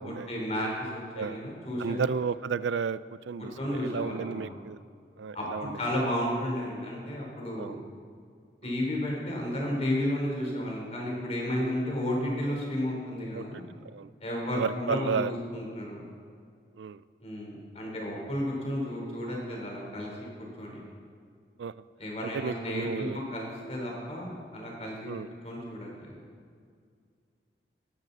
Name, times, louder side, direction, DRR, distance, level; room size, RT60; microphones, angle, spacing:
voice 1, 0.0-2.1 3.6-4.5 5.3-7.8 8.6-13.6 14.2-16.0 17.2-20.3 20.6-20.8 22.0-25.2 25.4-26.1, left 1 dB, 35° left, -2 dB, 3.9 m, -32 dB
voice 2, 1.8-3.0 3.3-4.8 5.2-6.1 7.6-7.8 8.6-8.8 13.3-13.6 13.9-14.1 14.5-15.3 16.8-17.0 21.6-21.7 22.2-23.2 25.1-25.3, right 6 dB, 85° right, 16 dB, 0.4 m, -33 dB
18.0 x 13.0 x 4.1 m, 2.2 s
head